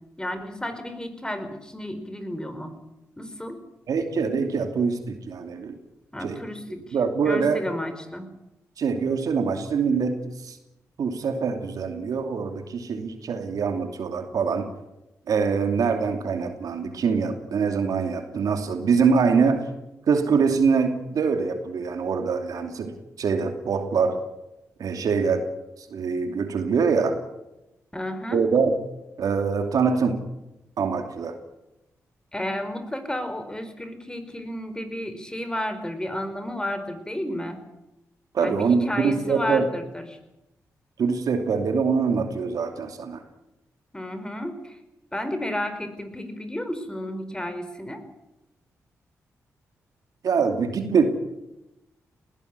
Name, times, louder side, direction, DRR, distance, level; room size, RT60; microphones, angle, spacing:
voice 1, 0.2-2.7 3.2-3.6 6.1-7.0 7.2-8.3 27.9-28.4 32.3-37.6 38.4-40.2 43.9-44.8 45.1-48.0, left 1 dB, 10° left, 9 dB, 4.7 m, -32 dB
voice 2, 3.9-5.8 6.2-6.4 6.9-7.6 8.8-10.6 11.0-14.7 15.3-19.7 20.1-22.9 23.2-24.2 24.8-25.5 25.9-27.2 28.3-28.8 29.2-30.2 30.8-31.4 38.3-39.6 41.0-43.2 50.2-51.0, right 5 dB, 70° right, 6 dB, 2.8 m, -24 dB
20.0 x 16.5 x 9.7 m, 0.92 s
supercardioid pair, 50°, 6 cm